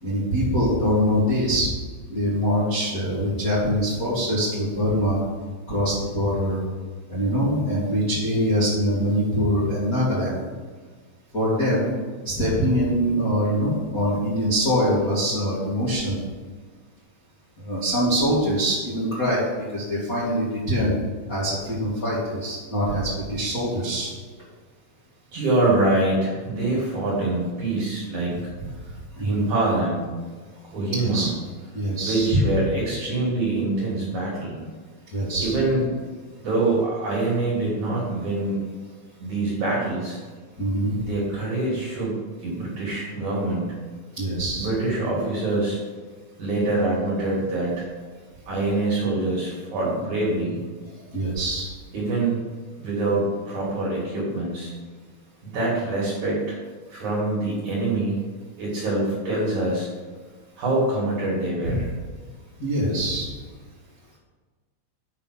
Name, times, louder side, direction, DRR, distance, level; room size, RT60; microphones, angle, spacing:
voice 1, 0.0-1.7 2.1-5.2 5.7-6.6 7.1-10.4 11.3-11.9 12.2-16.2 17.6-19.4 19.7-20.9 21.3-24.1 29.1-29.5 30.9-31.3 31.7-32.4 35.1-35.5 40.6-40.9 44.2-44.7 51.1-51.7 61.6-61.8 62.6-63.3, equal, 55° left, -9 dB, 0.9 m, -23 dB
voice 2, 25.3-28.4 29.2-30.0 30.7-31.3 32.0-34.6 35.4-35.9 36.4-38.6 39.2-40.2 41.1-43.7 44.6-45.8 46.4-47.9 48.5-50.6 51.9-52.4 52.8-54.7 55.4-56.6 56.9-58.2 58.6-59.9 60.6-61.9, right 2 dB, 50° right, -5 dB, 2.4 m, -25 dB
9.0 x 5.6 x 6.0 m, 1.4 s
omnidirectional pair, 5.9 m